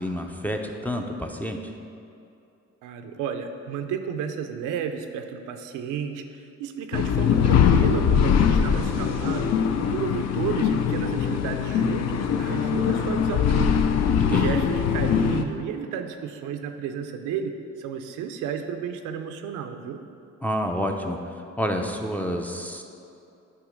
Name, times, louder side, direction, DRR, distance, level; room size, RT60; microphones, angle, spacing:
voice 1, 0.0-1.6 14.2-14.6 20.4-21.2 21.6-22.8, equal, 5° left, 2 dB, 0.4 m, -28 dB
voice 2, 2.8-9.5 9.9-13.9 14.2-17.5 17.8-20.0, right 7 dB, 90° right, 7 dB, 0.5 m, -32 dB
sound 1, 6.9-15.4, left 7 dB, 60° left, 0.5 m, -22 dB
8.2 x 3.0 x 5.1 m, 2.6 s
cardioid pair, 90°, 30 cm